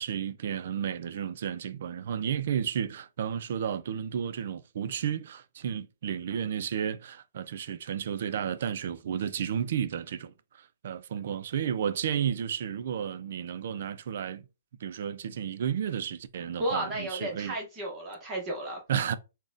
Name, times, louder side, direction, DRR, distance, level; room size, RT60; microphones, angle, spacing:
voice 1, 0.0-14.4 14.8-17.6 18.9-19.2, right 8 dB, 60° right, 0.3 m, -32 dB
voice 2, 16.6-18.8, right 1 dB, 20° right, 0.8 m, -33 dB
3.8 x 2.1 x 2.5 m
hypercardioid pair, 165°, 0 cm